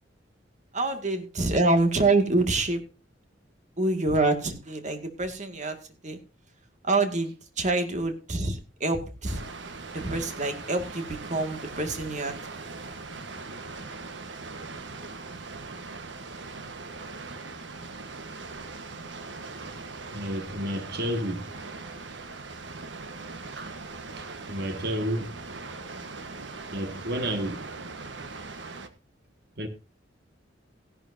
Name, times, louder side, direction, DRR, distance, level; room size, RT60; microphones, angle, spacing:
voice 1, 0.7-2.8 3.8-5.8 6.0-6.2 6.8-9.4 9.9-12.3, right 2 dB, 40° right, 2.2 m, -26 dB
Water, 9.3-28.9, right 3 dB, 80° right, 1.4 m, -40 dB
voice 2, 20.1-21.5 23.6-23.7 24.2-25.3 26.7-27.7 29.6-29.7, equal, 60° right, 2.0 m, -31 dB
16.0 x 11.5 x 2.8 m
head